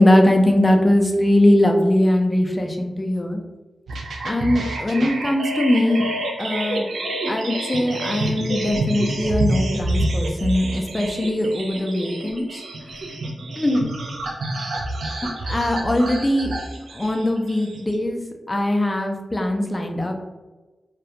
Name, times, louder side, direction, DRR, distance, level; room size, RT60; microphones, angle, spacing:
voice 1, 0.0-3.4 4.2-6.1 6.4-6.9 7.3-12.6 13.6-13.8 15.4-16.5 16.9-18.2 18.5-20.1, left 1 dB, 20° left, 3 dB, 0.4 m, -20 dB
sound 1, 3.9-18.0, right 1 dB, 80° right, 0.4 m, -28 dB
2.3 x 2.1 x 2.7 m, 1.2 s
cardioid pair, 65°, 0 cm